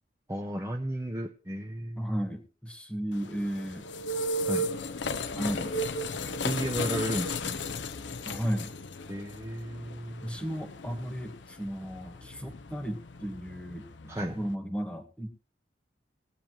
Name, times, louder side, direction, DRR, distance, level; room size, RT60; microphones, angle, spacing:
voice 1, 0.3-2.1 4.5-4.7 6.4-7.6 9.1-10.2 14.1-14.4, right 1 dB, 15° right, 1 dB, 0.6 m, -34 dB
voice 2, 2.0-3.8 5.3-5.7 8.2-8.7 10.2-15.3, equal, 5° left, 6 dB, 1.5 m, -34 dB
sound 1, 3.1-14.5, left 1 dB, 90° left, 0.8 m, -35 dB
20.0 x 8.7 x 3.1 m, 0.37 s
head